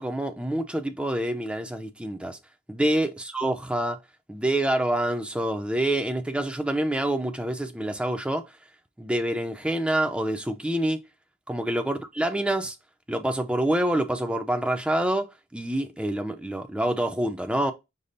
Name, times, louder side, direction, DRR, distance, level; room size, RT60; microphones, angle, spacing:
voice 1, 0.0-2.4 2.7-4.0 4.3-8.4 9.0-11.0 11.5-12.8 13.1-17.7, right 1 dB, 5° right, 0.4 m, -27 dB
5.1 x 2.7 x 3.9 m
head